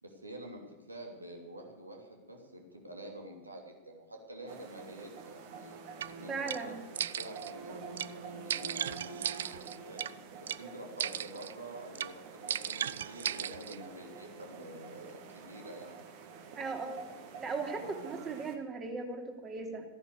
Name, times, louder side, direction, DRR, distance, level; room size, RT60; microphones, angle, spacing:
voice 1, 0.0-5.8 6.2-6.7 7.1-10.0 10.4-16.0 17.8-17.9, right 1 dB, 85° right, 1 dB, 2.9 m, -48 dB
sound 1, 4.5-18.6, right 5 dB, 50° right, 2.0 m, -48 dB
sound 2, 6.0-6.1 6.5-6.6 6.9-7.5 8.0-8.1 8.5-10.1 10.5-10.6 11.0-11.5 11.9-12.1 12.5-13.8, right 9 dB, 65° right, 0.4 m, -36 dB
voice 2, 6.3-6.7 16.5-17.0 17.4-19.8, right 4 dB, 25° right, 3 dB, 2.9 m, -37 dB
14.5 x 10.5 x 8.4 m, 1.2 s
figure-of-eight pair, 95°, 0 cm